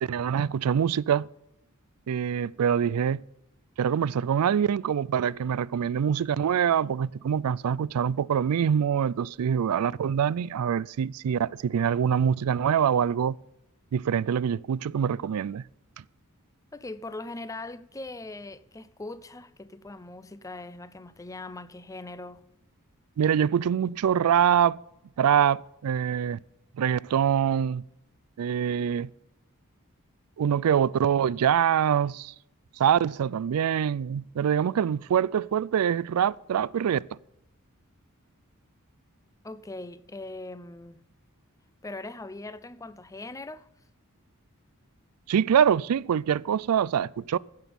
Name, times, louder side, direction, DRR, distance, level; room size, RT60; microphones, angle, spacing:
voice 1, 0.0-1.3 2.1-3.2 3.8-13.4 13.9-15.6 23.2-24.8 25.2-26.4 26.7-27.8 28.4-29.1 30.4-32.3 32.8-37.1 45.3-47.4, right 8 dB, 80° right, 0.4 m, -24 dB
voice 2, 16.7-22.4 39.4-41.1 41.8-43.7, left 2 dB, 15° left, 0.5 m, -40 dB
16.0 x 6.1 x 7.0 m
head